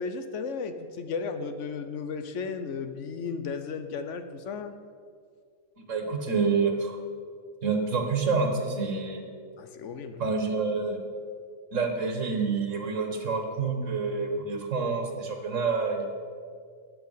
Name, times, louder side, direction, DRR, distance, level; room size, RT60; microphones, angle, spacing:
voice 1, 0.0-4.7 9.6-10.2, left 5 dB, 75° left, 9 dB, 1.2 m, -34 dB
voice 2, 5.8-7.0 7.6-9.2 10.2-11.0 11.7-16.1, right 4 dB, 85° right, 4 dB, 1.8 m, -28 dB
13.0 x 8.6 x 5.7 m, 2.1 s
omnidirectional pair, 1.3 m